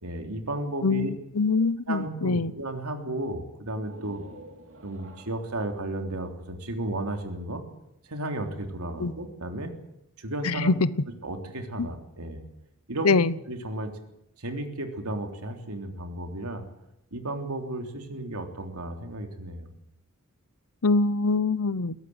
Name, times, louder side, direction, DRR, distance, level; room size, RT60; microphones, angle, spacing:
voice 1, 0.0-1.1 1.9-4.2 4.8-7.6 8.1-9.7 10.2-10.8 11.2-12.4 12.9-13.2 13.5-13.9 14.4-16.6 17.1-19.7, right 1 dB, 90° right, 4 dB, 3.4 m, -33 dB
voice 2, 0.8-2.5 9.0-9.1 10.4-10.9 11.8-11.9 13.0-13.3 20.8-21.9, left 3 dB, 85° left, 18 dB, 0.9 m, -24 dB
sound 1, 3.7-7.3, right 1 dB, 60° right, 3.4 m, -50 dB
22.0 x 17.5 x 8.0 m, 0.83 s
head